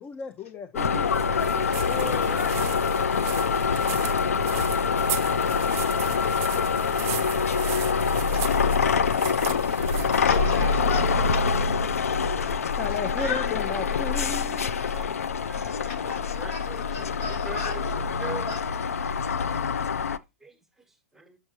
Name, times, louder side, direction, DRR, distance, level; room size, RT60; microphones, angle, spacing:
voice 1, 0.0-1.1 8.3-8.4 12.8-14.7, left 5 dB, 25° left, 0.5 m, -35 dB
sound 1, 0.8-20.2, left 5 dB, 80° left, 0.4 m, -25 dB
voice 2, 0.9-2.7 10.2-11.0 12.2-12.6 13.2-13.3 14.9-18.5 20.4-20.6 21.1-21.4, right 3 dB, 5° right, 1.1 m, -43 dB
sound 2, 1.2-11.0, right 14 dB, 35° right, 0.5 m, -38 dB
voice 3, 1.8-2.8 5.5-5.6 5.8-6.4 8.8-9.1 9.7-11.6 12.4-12.5 13.2-13.4 15.9-17.8 18.2-18.6, left 5 dB, 60° left, 1.7 m, -37 dB
6.9 x 5.4 x 2.9 m
hypercardioid pair, 105°, 8 cm